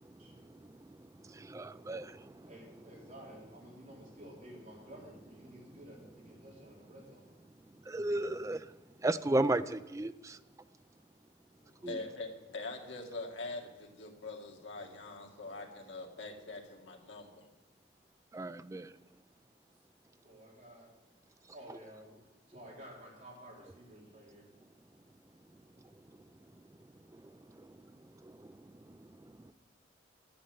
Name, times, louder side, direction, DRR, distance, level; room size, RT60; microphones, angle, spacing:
voice 1, 0.2-0.7 2.5-7.3 11.6-11.8 20.2-20.9 21.5-22.2 22.5-24.4, equal, 40° right, -4 dB, 4.2 m, -53 dB
voice 2, 1.2-2.5 7.9-8.6 9.0-10.4 11.8-12.0 18.3-18.9, right 2 dB, 15° right, 12 dB, 0.4 m, -33 dB
voice 3, 11.8-17.5, left 3 dB, 85° left, 2 dB, 2.0 m, -43 dB
9.8 x 8.5 x 7.7 m, 1.1 s
head